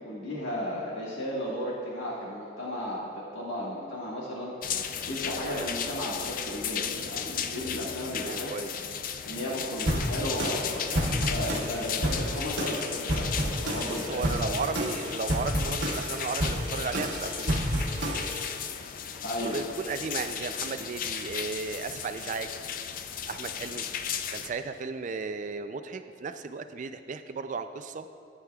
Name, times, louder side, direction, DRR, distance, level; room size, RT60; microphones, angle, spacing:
voice 1, 0.0-8.7 9.2-14.7 19.2-19.6, equal, 85° left, -6 dB, 1.6 m, -35 dB
sound 1, 4.6-24.5, left 8 dB, 45° left, 0.4 m, -35 dB
voice 2, 8.1-8.7 13.9-17.7 19.4-22.5 23.3-23.9 24.3-28.1, right 4 dB, 40° right, 9 dB, 0.3 m, -35 dB
sound 2, 9.9-18.6, equal, 70° right, 1.1 m, -30 dB
14.5 x 9.0 x 2.3 m, 2.5 s
head